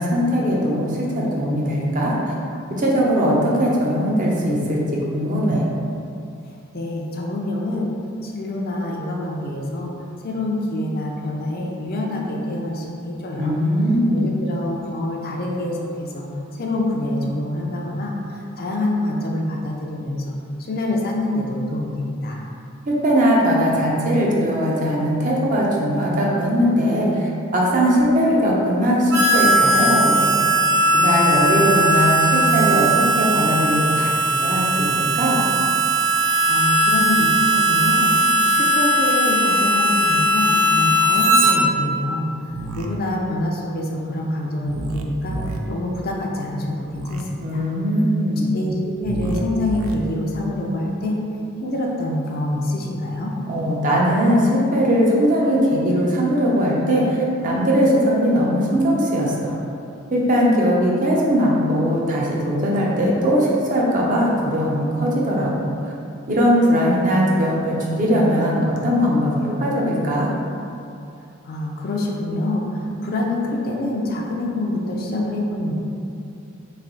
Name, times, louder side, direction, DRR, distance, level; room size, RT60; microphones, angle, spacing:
voice 1, 0.0-2.3 2.7-5.7 13.4-14.3 22.9-30.4 30.9-35.4 47.4-48.5 53.5-59.6 60.1-65.7 66.3-70.3, equal, 40° right, -4 dB, 0.6 m, -20 dB
voice 2, 6.7-7.9 8.2-9.9 10.2-13.6 14.1-16.3 16.6-20.3 20.7-22.4 36.5-38.1 38.5-42.3 42.7-45.4 45.7-47.6 48.5-51.2 51.6-53.3 71.5-75.7, left 1 dB, 45° left, -1 dB, 0.5 m, -26 dB
Harmonica, 29.1-41.5, right 1 dB, 70° right, 1.0 m, -18 dB
sound 1, 42.5-42.9 44.6-45.6 46.8-47.2 49.0-49.9, right 3 dB, 90° right, 0.4 m, -30 dB
3.2 x 2.6 x 3.8 m, 2.6 s
head